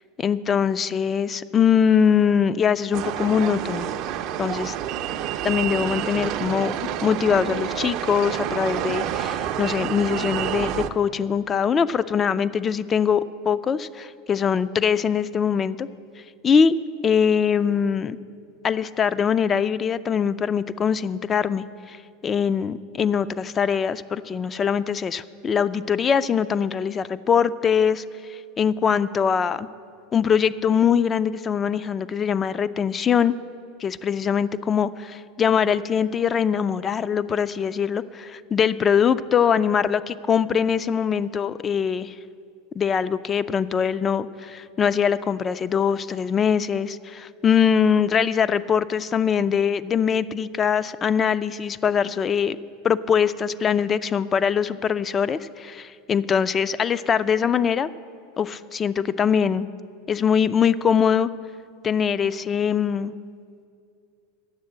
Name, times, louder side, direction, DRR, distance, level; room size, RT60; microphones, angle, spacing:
voice 1, 0.2-3.9 4.4-4.7 5.4-6.7 7.0-15.9 16.4-16.8 17.0-18.2 18.6-22.0 22.2-28.0 28.3-29.7 30.1-33.4 33.8-42.1 42.8-52.6 52.8-57.9 58.4-59.7 60.1-61.3 61.8-63.1, left 7 dB, 30° left, 16 dB, 0.4 m, -22 dB
sound 1, 2.9-10.9, right 10 dB, 50° right, 0.5 m, -28 dB
9.5 x 7.2 x 7.5 m, 2.3 s
hypercardioid pair, 95°, 0 cm